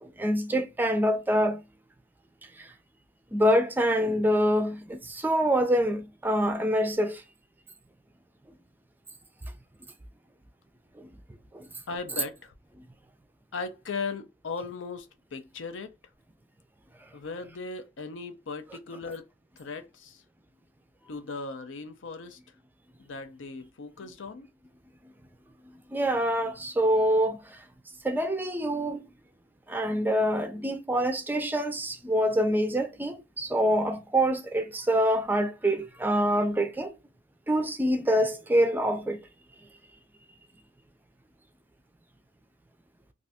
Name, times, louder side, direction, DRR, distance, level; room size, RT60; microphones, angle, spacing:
voice 1, 0.0-1.6 2.6-2.7 3.3-7.2 11.0-11.1 11.5-11.7 25.9-27.4 28.0-29.1 29.7-36.9 37.5-39.2, equal, 10° right, 0.4 m, -25 dB
voice 2, 11.9-12.5 13.5-15.9 17.1-19.2 19.6-20.2 21.1-22.4 23.0-24.5, left 4 dB, 85° left, 0.6 m, -37 dB
2.6 x 2.4 x 3.4 m
head